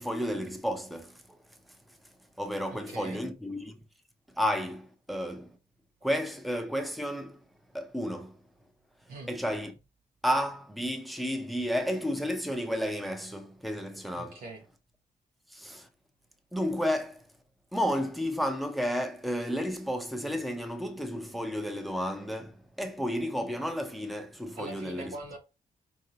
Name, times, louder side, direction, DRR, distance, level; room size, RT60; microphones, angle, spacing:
voice 1, 0.0-1.4 2.4-3.8 4.3-5.6 6.0-7.4 7.7-8.4 9.3-9.7 10.2-14.4 15.5-15.9 16.5-17.3 17.7-25.1, equal, ahead, 0.7 m, -32 dB
voice 2, 2.7-3.2 9.1-9.3 14.2-14.6 24.6-25.4, right 2 dB, 90° right, 1.0 m, -42 dB
4.6 x 2.7 x 2.8 m
cardioid pair, 90°, 15 cm